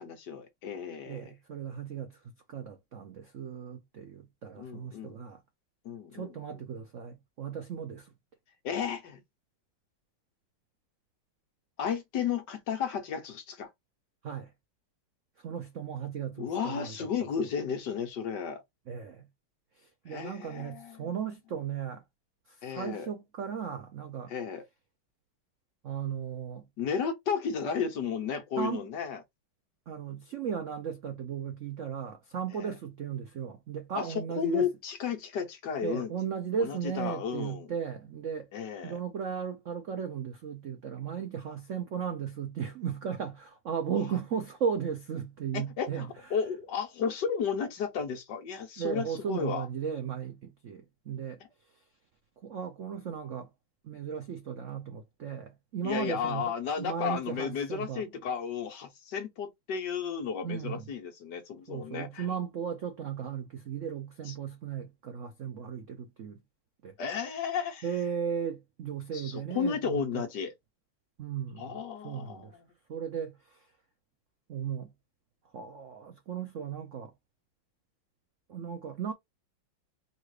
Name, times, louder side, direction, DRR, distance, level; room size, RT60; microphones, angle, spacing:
voice 1, 0.0-1.3 4.5-5.2 5.8-6.3 8.6-9.2 11.8-13.7 16.4-18.6 20.1-21.1 22.6-23.1 24.3-24.6 26.8-29.2 32.5-32.7 33.9-34.1 34.4-36.1 36.6-37.7 38.5-38.9 45.5-49.7 55.8-62.3 64.3-64.4 67.0-67.9 69.1-70.5 71.6-72.6, left 7 dB, 60° left, 1.5 m, -33 dB
voice 2, 1.1-2.2 2.5-5.4 6.1-8.1 14.2-14.5 15.4-17.1 18.9-19.3 19.8-22.0 22.5-24.3 25.8-26.6 28.6-28.8 29.9-34.7 35.8-38.5 38.8-46.1 48.8-51.4 52.4-53.5 53.8-56.5 56.8-58.0 60.4-60.8 61.7-66.4 66.8-66.9 67.8-70.2 71.2-72.5 72.9-73.7 74.5-74.9 75.5-77.1 78.5-79.1, right 7 dB, 75° right, 0.7 m, -36 dB
4.1 x 2.5 x 4.7 m
omnidirectional pair, 2.3 m